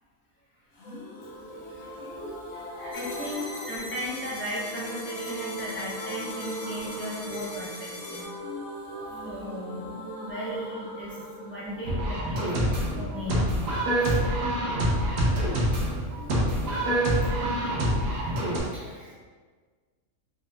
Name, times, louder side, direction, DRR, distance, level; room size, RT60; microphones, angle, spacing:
sound 1, 0.8-14.4 14.6-14.7 15.0-15.1, right 1 dB, 80° left, 1.2 m, -40 dB
voice 1, 2.0-2.9 12.9-13.0 16.2-16.3 18.7-19.1, left 1 dB, 45° left, -7 dB, 0.4 m, -44 dB
voice 2, 2.6-8.3 9.2-12.5 13.0-13.5 14.0-14.2 15.8-16.0, equal, 10° left, -9 dB, 1.2 m, -36 dB
sound 2, 2.9-8.2, left 2 dB, 65° left, 1.3 m, -41 dB
sound 3, 11.8-18.6, right 1 dB, 70° right, 1.3 m, -26 dB
4.7 x 4.2 x 2.5 m, 1.5 s
omnidirectional pair, 1.5 m